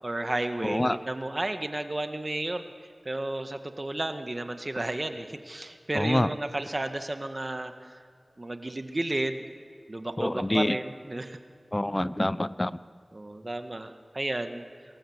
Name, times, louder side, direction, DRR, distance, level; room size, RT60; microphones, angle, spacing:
voice 1, 0.0-2.6 3.0-7.7 8.4-9.4 9.9-11.4 13.1-14.6, right 2 dB, 45° right, 8 dB, 1.7 m, -32 dB
voice 2, 0.6-1.0 5.9-6.3 10.2-10.8 11.7-12.8, left 1 dB, 25° left, 17 dB, 0.7 m, -26 dB
25.5 x 20.5 x 8.1 m, 2.2 s
wide cardioid pair, 50°, 0 cm